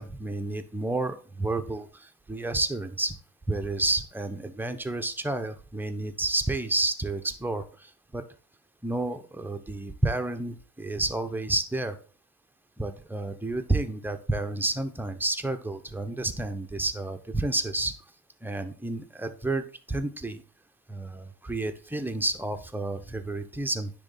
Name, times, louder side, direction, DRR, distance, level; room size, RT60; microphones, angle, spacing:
voice 1, 0.0-3.1 3.5-8.2 8.8-12.0 12.8-17.9 18.4-20.4 20.9-23.9, right 2 dB, 5° right, 7 dB, 0.8 m, -30 dB
9.9 x 3.7 x 3.9 m, 0.38 s
hypercardioid pair, 60°, 50 cm